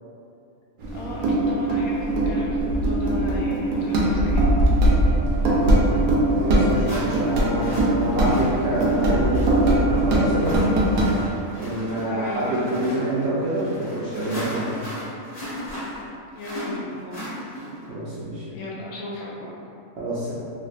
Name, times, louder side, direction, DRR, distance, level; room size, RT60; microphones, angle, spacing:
sound 1, 0.8-11.1, right 1 dB, 85° right, 1.1 m, -21 dB
voice 1, 0.9-4.8 12.1-12.9 16.4-17.3 18.5-19.5, left 1 dB, 80° left, -5 dB, 1.1 m, -35 dB
sound 2, 5.9-6.0 6.8-17.9, equal, 30° left, 0.8 m, -36 dB
voice 2, 6.4-10.7 11.6-14.7 17.9-18.5 20.0-20.3, right 1 dB, 65° right, -8 dB, 0.6 m, -26 dB
3.1 x 2.5 x 2.4 m, 2.7 s
omnidirectional pair, 1.5 m